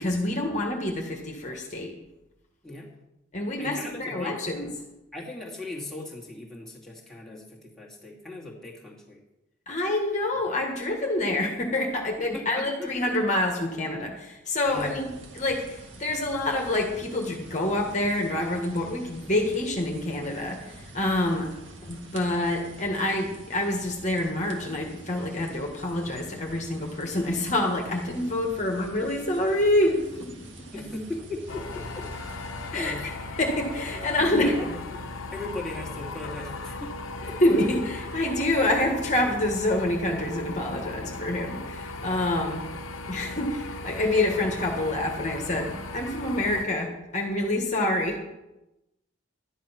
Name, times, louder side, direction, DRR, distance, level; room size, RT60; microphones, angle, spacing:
voice 1, 0.0-1.9 3.3-4.7 9.7-15.1 15.3-21.5 21.8-30.7 32.7-32.9 33.3-34.5 37.4-37.8 38.1-42.6 43.1-48.3, left 1 dB, 35° left, 1 dB, 1.7 m, -27 dB
voice 2, 3.6-4.4 5.1-9.2 12.2-12.9 14.7-15.3 30.7-32.1 32.7-33.2 34.2-36.9 37.2-37.8, left 2 dB, ahead, -4 dB, 2.3 m, -38 dB
sound 1, 14.6-32.7, right 1 dB, 60° right, 2.0 m, -47 dB
sound 2, 31.5-46.7, left 2 dB, 80° left, 1.2 m, -37 dB
12.5 x 10.5 x 5.9 m, 0.96 s
head